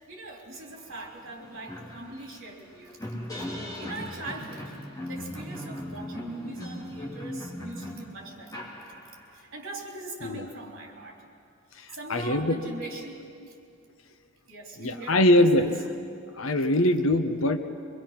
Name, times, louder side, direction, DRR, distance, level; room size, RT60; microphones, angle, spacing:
voice 1, 0.1-3.0 3.8-4.8 5.0-8.7 9.3-11.2 11.9-13.5 14.5-15.7, right 2 dB, 65° right, 0 dB, 3.7 m, -41 dB
sound 1, 0.9-1.0 1.3-9.4, left 1 dB, 15° left, 2.9 m, -38 dB
voice 2, 12.1-12.6 14.8-15.7 16.4-17.6, left 1 dB, 70° left, 8 dB, 1.0 m, -22 dB
24.0 x 22.0 x 5.9 m, 2.5 s
head